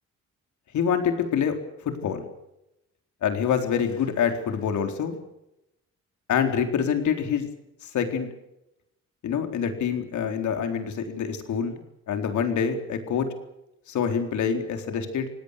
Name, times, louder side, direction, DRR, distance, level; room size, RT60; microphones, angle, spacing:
voice 1, 0.7-1.6 1.8-2.2 3.2-5.2 6.3-7.5 7.8-8.3 9.2-11.8 12.1-13.3 13.9-15.3, left 7 dB, 70° left, 6 dB, 4.1 m, -26 dB
27.5 x 18.5 x 6.7 m, 0.87 s
cardioid pair, 90°, 30 cm